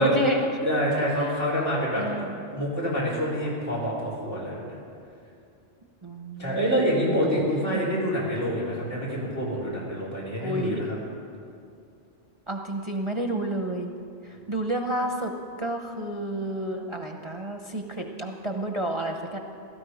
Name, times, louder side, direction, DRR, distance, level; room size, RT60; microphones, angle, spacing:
voice 1, 0.0-0.6 1.2-1.4 1.9-2.4 6.0-6.8 7.3-7.4 7.7-7.8 10.4-10.8 12.5-13.9 14.2-15.3 15.6-19.4, right 1 dB, 30° right, 3 dB, 0.7 m, -30 dB
voice 2, 0.6-2.0 2.5-4.6 6.4-10.9, equal, 80° left, -6 dB, 4.3 m, -26 dB
17.0 x 13.5 x 5.0 m, 2.5 s
omnidirectional pair, 1.3 m